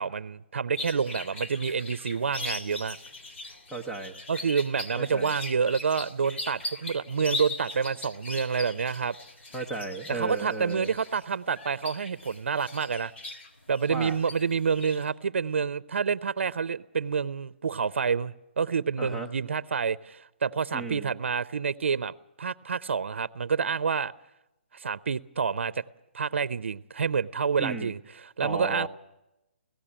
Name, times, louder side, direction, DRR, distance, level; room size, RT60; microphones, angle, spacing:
voice 1, 0.0-3.0 4.3-9.2 10.1-13.1 13.7-22.1 22.4-24.1 24.7-25.8 26.1-28.0 28.4-28.9, right 6 dB, 80° right, 0.6 m, -28 dB
sound 1, 0.8-15.0, left 2 dB, 75° left, 3.5 m, -40 dB
voice 2, 3.7-4.2 5.0-5.3 9.5-10.9 13.9-14.2 19.0-19.3 20.7-21.1 27.6-27.9 28.4-28.9, right 3 dB, 5° left, 0.8 m, -34 dB
17.5 x 15.0 x 10.0 m
hypercardioid pair, 170°, 6 cm